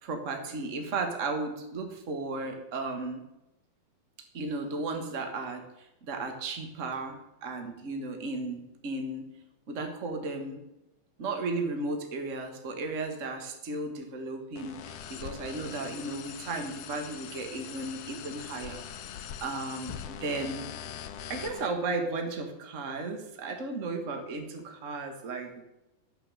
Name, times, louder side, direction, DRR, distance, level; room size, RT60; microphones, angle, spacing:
voice 1, 0.0-3.2 4.3-5.6 6.0-9.2 9.7-10.6 11.2-18.8 19.4-20.6 21.3-25.6, right 3 dB, 75° right, 5 dB, 0.7 m, -35 dB
sound 1, 14.6-21.7, left 9 dB, 75° left, 1.4 m, -42 dB
9.5 x 7.7 x 7.5 m, 0.93 s
omnidirectional pair, 3.6 m